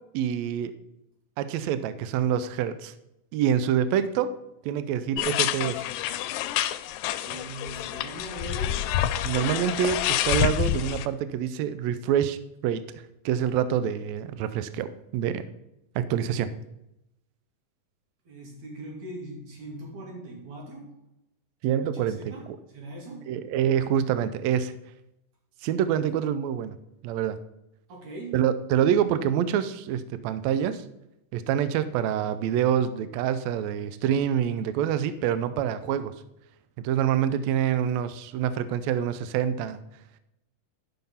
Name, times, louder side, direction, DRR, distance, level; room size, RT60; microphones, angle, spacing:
voice 1, 0.1-0.7 1.4-2.9 3.3-4.3 4.6-5.8 9.2-12.4 12.6-15.4 15.9-16.5 21.6-22.2 23.3-24.7 25.6-26.7 27.0-27.4 28.3-30.8 31.3-36.1 36.8-39.8, right 9 dB, 90° right, 13 dB, 1.5 m, -26 dB
sound 1, 5.2-11.1, left 12 dB, 80° left, 2.1 m, -28 dB
voice 2, 7.2-9.0 18.3-20.9 21.8-22.5 22.7-23.3 27.9-28.4, right 1 dB, 60° right, -1 dB, 4.0 m, -40 dB
11.5 x 5.8 x 5.6 m, 0.85 s
omnidirectional pair, 3.9 m